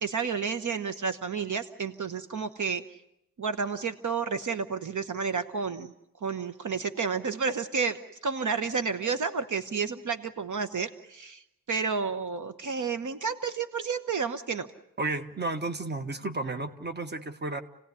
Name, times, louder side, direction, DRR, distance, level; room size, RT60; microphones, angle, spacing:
voice 1, 0.0-2.8 3.4-5.9 6.2-11.4 11.7-14.7, right 5 dB, 60° right, 10 dB, 1.1 m, -31 dB
voice 2, 15.0-17.6, right 2 dB, 30° right, 8 dB, 1.4 m, -32 dB
28.5 x 17.5 x 9.7 m, 0.82 s
wide cardioid pair, 180°, 33 cm